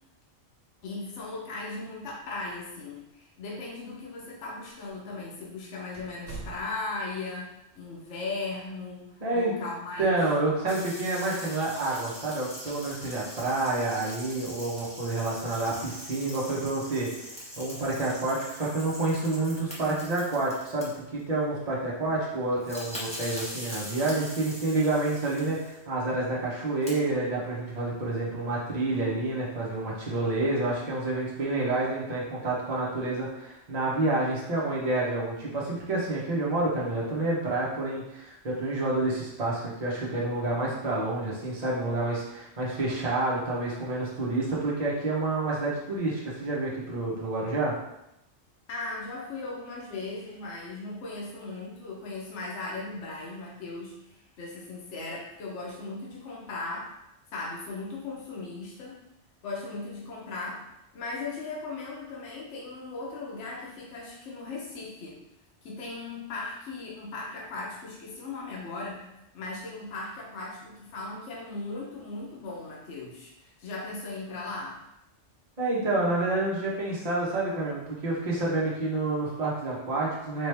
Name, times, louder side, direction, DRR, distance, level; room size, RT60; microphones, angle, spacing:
voice 1, 0.8-10.2 48.7-56.9 57.3-59.0 59.4-60.6 60.9-65.2 65.6-69.1 69.3-74.8, left 3 dB, 70° left, -4 dB, 1.1 m, -37 dB
sound 1, 2.0-2.7 2.9-3.0 3.8-3.9 4.7-4.9 5.3-5.4 5.9-7.1, right 3 dB, 70° right, 1.2 m, -44 dB
voice 2, 9.2-9.5 10.0-47.7 75.6-80.5, right 2 dB, 35° right, -5 dB, 0.9 m, -29 dB
sound 2, 10.7-21.2 22.2-22.3 22.5-25.8 26.6-26.9, equal, 5° left, 1.0 m, -42 dB
4.2 x 3.1 x 3.3 m, 0.86 s
omnidirectional pair, 1.3 m